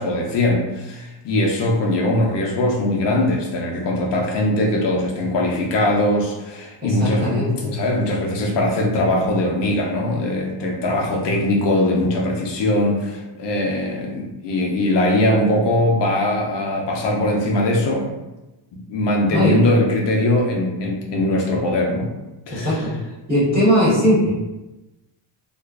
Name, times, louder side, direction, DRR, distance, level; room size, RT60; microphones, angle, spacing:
voice 1, 0.0-18.1 18.7-22.1 22.5-22.9, left 1 dB, 65° left, -1 dB, 0.5 m, -21 dB
voice 2, 6.8-7.8 19.3-19.7 22.5-22.9 23.3-24.3, equal, 20° right, -9 dB, 1.1 m, -19 dB
2.4 x 2.2 x 2.2 m, 1.0 s
cardioid pair, 150°, 46 cm